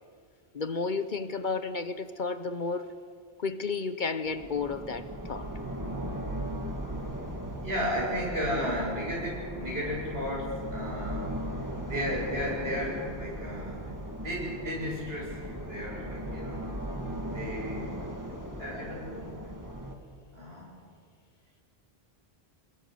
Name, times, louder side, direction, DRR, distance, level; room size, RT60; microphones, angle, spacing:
voice 1, 0.5-2.9 3.4-5.5, left 4 dB, 50° left, 12 dB, 1.0 m, -32 dB
sound 1, 4.3-19.9, equal, 15° right, 2.1 m, -38 dB
voice 2, 7.5-11.3 11.8-16.7 17.3-17.9 18.6-19.5 20.3-20.8, equal, 70° right, -2 dB, 7.5 m, -34 dB
28.0 x 21.5 x 6.7 m, 2.1 s
omnidirectional pair, 1.1 m